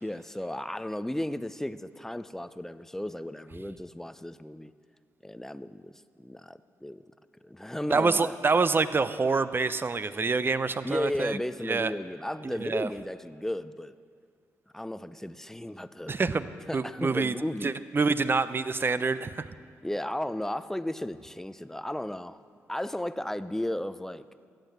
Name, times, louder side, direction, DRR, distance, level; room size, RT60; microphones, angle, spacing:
voice 1, 0.0-4.7 5.2-7.0 7.4-8.4 10.8-13.9 14.7-16.2 16.7-17.7 19.8-22.4 22.7-24.2, left 1 dB, 5° left, 14 dB, 0.6 m, -34 dB
voice 2, 7.9-11.4 11.7-11.9 12.4-12.9 16.1-16.5 16.7-17.3 17.6-19.5, right 4 dB, 35° right, 14 dB, 0.7 m, -26 dB
14.5 x 8.8 x 7.8 m, 2.1 s
supercardioid pair, 50°, 6 cm